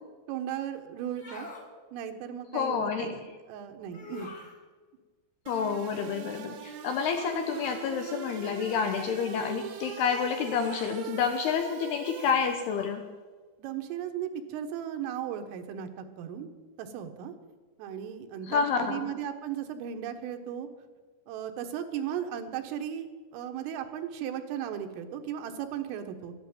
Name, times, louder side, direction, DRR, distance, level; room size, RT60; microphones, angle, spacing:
voice 1, 0.3-1.5 1.9-4.4 13.6-16.5 16.8-17.3 17.8-20.7 21.3-26.3, right 9 dB, 85° right, 6 dB, 3.8 m, -36 dB
sound 1, 1.0-1.7 3.9-4.6 7.1-7.4 8.8-9.2 10.6-11.0 12.7-13.0, left 3 dB, 35° left, 1.8 m, -45 dB
voice 2, 2.5-3.1 5.5-13.1 18.5-19.1, left 6 dB, 75° left, 6 dB, 2.4 m, -29 dB
sound 2, 5.5-12.9, right 8 dB, 65° right, 2.4 m, -42 dB
13.5 x 11.0 x 9.0 m, 1.4 s
omnidirectional pair, 5.7 m